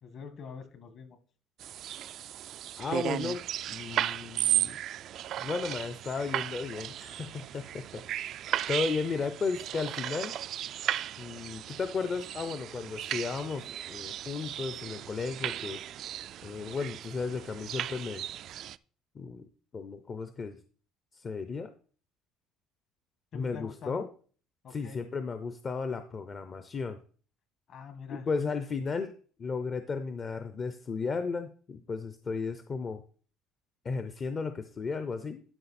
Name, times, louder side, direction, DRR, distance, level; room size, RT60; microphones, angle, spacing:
voice 1, 0.0-1.2 23.3-24.1 24.6-25.0 27.7-28.3, left 6 dB, 50° left, 9 dB, 1.6 m, -44 dB
sound 1, 1.6-18.8, right 11 dB, 55° right, 0.3 m, -35 dB
voice 2, 2.8-3.4 3.7-4.8 5.4-8.4 8.7-10.3 11.2-15.8 16.4-18.2 19.1-20.6 21.1-21.7 23.3-24.1 24.7-27.0 28.1-29.1 29.4-33.0 33.8-35.4, left 4 dB, 30° left, 10 dB, 0.6 m, -34 dB
12.0 x 5.1 x 4.2 m, 0.42 s
cardioid pair, 120°, 0 cm